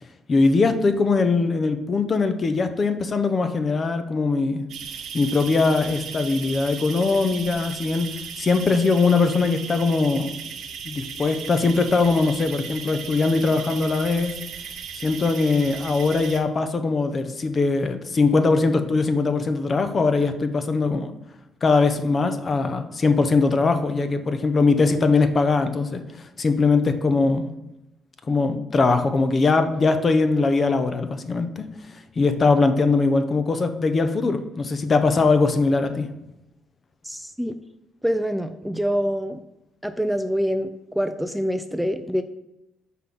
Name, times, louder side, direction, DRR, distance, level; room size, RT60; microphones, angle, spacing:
voice 1, 0.3-4.7 5.1-8.1 8.4-10.3 10.8-14.3 15.0-21.1 21.6-27.5 28.3-31.6 32.2-36.1, left 3 dB, 40° left, 9 dB, 0.7 m, -21 dB
sound 1, 4.7-16.4, right 7 dB, 75° right, 0.9 m, -36 dB
voice 2, 37.0-37.5 38.0-39.4 39.8-42.2, equal, ahead, 8 dB, 0.4 m, -25 dB
5.8 x 3.7 x 5.9 m, 0.91 s
cardioid pair, 90°, 0 cm